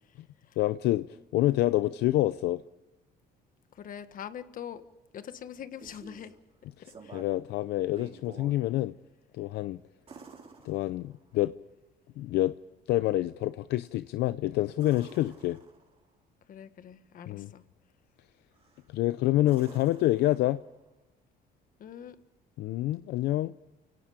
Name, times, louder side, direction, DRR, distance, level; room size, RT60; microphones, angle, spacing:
voice 1, 0.6-2.6 6.8-6.9 7.1-8.9 9.3-9.8 10.6-11.5 12.2-12.6 12.9-15.6 17.3-17.5 18.9-20.6 22.6-23.5, left 15 dB, 80° left, 0.6 m, -27 dB
voice 2, 3.7-4.8 5.1-6.3 7.0-7.2 16.5-17.6 21.8-22.1, left 9 dB, 55° left, 1.5 m, -43 dB
sound 1, 5.5-6.4 6.8-7.5 7.8-8.6 10.1-11.3 14.7-16.1 18.5-18.9 19.4-20.8 22.9-23.0, right 4 dB, 35° right, 3.9 m, -51 dB
29.5 x 17.5 x 5.0 m
cardioid pair, 110°, 17 cm